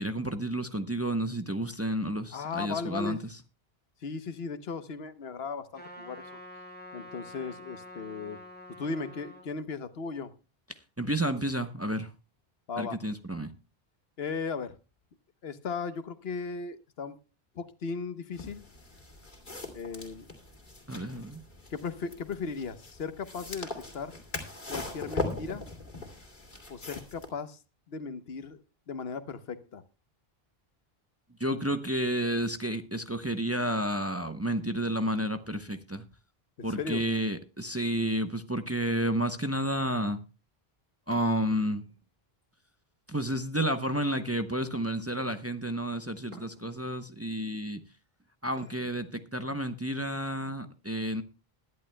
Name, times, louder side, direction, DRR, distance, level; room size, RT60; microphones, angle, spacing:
voice 1, 0.0-3.4 10.7-12.1 12.8-13.5 20.9-21.4 31.4-36.0 36.6-40.2 41.1-41.8 43.1-47.8 48.4-51.2, right 1 dB, 15° right, 0.7 m, -31 dB
voice 2, 2.3-3.2 4.0-6.4 6.9-8.4 8.8-10.3 12.7-13.0 14.2-14.7 15.4-17.2 17.5-18.6 19.7-20.3 21.7-24.1 24.7-25.6 26.7-27.6 27.9-28.6 28.9-29.8 36.6-37.0, left 5 dB, 80° left, 1.2 m, -36 dB
Trumpet, 5.7-9.5, left 1 dB, 10° left, 3.1 m, -47 dB
sound 1, 18.3-27.3, left 2 dB, 50° left, 2.8 m, -40 dB
sound 2, 41.1-42.1 43.7-44.7 46.3-46.9 48.6-49.2, right 2 dB, 40° right, 4.7 m, -53 dB
21.0 x 11.0 x 2.2 m
omnidirectional pair, 1.0 m